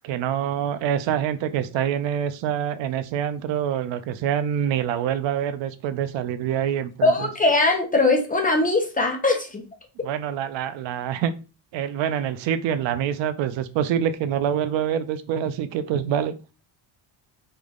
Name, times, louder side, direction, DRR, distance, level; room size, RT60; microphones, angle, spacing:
voice 1, 0.0-7.3 10.0-11.3 11.7-16.3, right 9 dB, 75° right, 11 dB, 0.5 m, -26 dB
voice 2, 7.0-9.6, left 2 dB, 20° left, 1 dB, 0.3 m, -21 dB
3.3 x 2.1 x 3.6 m, 0.32 s
cardioid pair, 175°, 46 cm